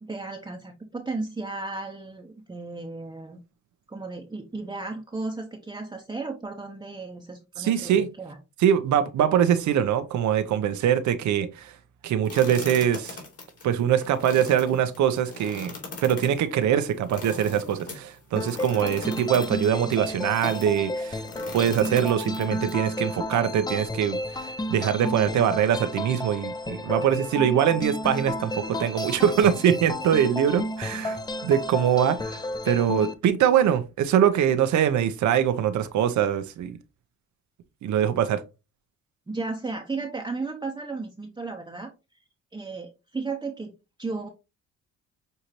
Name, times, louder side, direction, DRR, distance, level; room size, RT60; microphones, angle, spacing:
voice 1, 0.0-3.4 3.9-8.4 39.3-41.9 42.5-43.7 44.0-44.3, right 3 dB, 15° right, 0.7 m, -34 dB
voice 2, 7.6-8.1 8.6-11.7 12.0-13.2 13.6-15.7 16.0-21.2 21.5-31.2 31.4-36.8 37.8-38.4, right 9 dB, 75° right, 0.7 m, -23 dB
sound 1, 12.2-20.8 21.2-22.7, left 3 dB, 50° left, 2.4 m, -40 dB
sound 2, 18.4-33.1, left 1 dB, 15° left, 0.5 m, -32 dB
6.6 x 2.7 x 2.9 m
cardioid pair, 90°, 30 cm